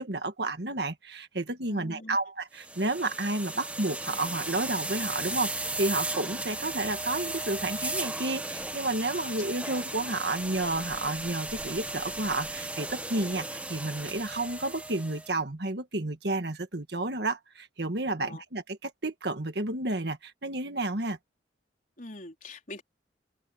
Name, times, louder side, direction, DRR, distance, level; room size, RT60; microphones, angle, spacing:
voice 1, 0.0-21.2, right 2 dB, 60° right, 1.8 m, -31 dB
voice 2, 1.7-2.2 9.1-9.3 9.6-9.8 18.2-18.4 22.0-22.8, left 2 dB, 45° left, 4.2 m, -44 dB
sound 1, 2.6-15.3, right 2 dB, 5° right, 1.4 m, -36 dB
open air
head